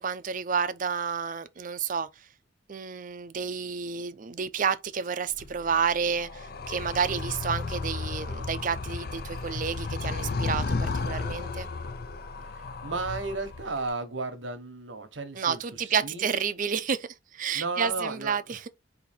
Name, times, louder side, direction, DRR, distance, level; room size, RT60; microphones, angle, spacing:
voice 1, 0.0-2.3 2.7-11.7 15.3-18.7, right 6 dB, 45° right, 0.5 m, -30 dB
Animal, 5.3-13.9, left 3 dB, 55° left, 0.6 m, -34 dB
voice 2, 12.5-16.3 17.5-18.4, right 3 dB, 85° right, 1.1 m, -34 dB
4.1 x 2.7 x 4.3 m
head